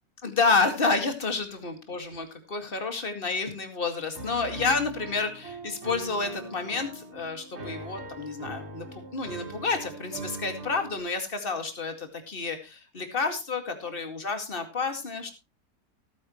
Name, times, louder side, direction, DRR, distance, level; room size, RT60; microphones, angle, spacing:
voice 1, 0.2-15.3, left 4 dB, 35° left, 6 dB, 2.3 m, -29 dB
Piano, 4.1-11.0, right 2 dB, 45° right, 2.2 m, -41 dB
17.0 x 9.7 x 3.1 m, 0.28 s
omnidirectional pair, 1.6 m